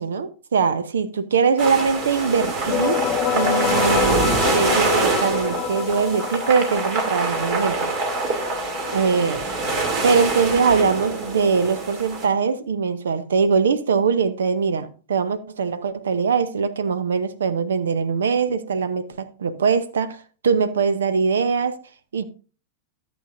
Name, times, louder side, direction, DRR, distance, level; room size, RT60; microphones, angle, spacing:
voice 1, 0.0-3.0 3.3-7.9 8.9-9.5 10.0-21.8 22.1-22.2, right 5 dB, 65° right, 0.7 m, -22 dB
sound 1, 1.6-12.2, right 3 dB, 40° right, 2.4 m, -25 dB
sound 2, 2.4-11.8, left 11 dB, 30° left, 0.7 m, -29 dB
13.5 x 7.7 x 2.5 m
figure-of-eight pair, 90°, 0 cm